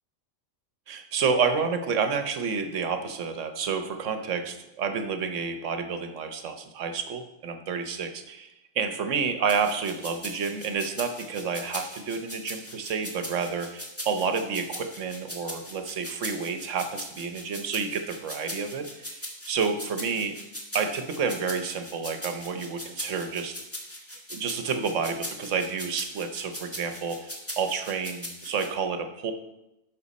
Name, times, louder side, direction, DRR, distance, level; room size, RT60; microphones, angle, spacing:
voice 1, 0.9-20.4 20.7-23.6 24.3-29.3, right 5 dB, 70° right, 7 dB, 1.2 m, -30 dB
sound 1, 9.5-28.7, equal, 10° left, 1.3 m, -39 dB
12.5 x 5.1 x 4.1 m, 0.92 s
omnidirectional pair, 1.3 m